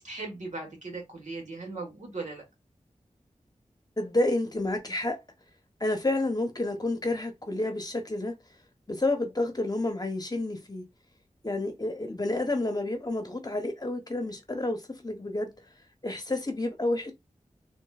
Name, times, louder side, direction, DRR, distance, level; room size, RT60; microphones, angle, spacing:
voice 1, 0.0-2.4, right 3 dB, 70° right, 1.4 m, -38 dB
voice 2, 4.0-5.2 5.8-8.3 8.9-10.8 11.4-15.5 16.0-17.1, left 2 dB, 30° left, 0.8 m, -29 dB
3.8 x 2.6 x 2.3 m
wide cardioid pair, 60°, 13 cm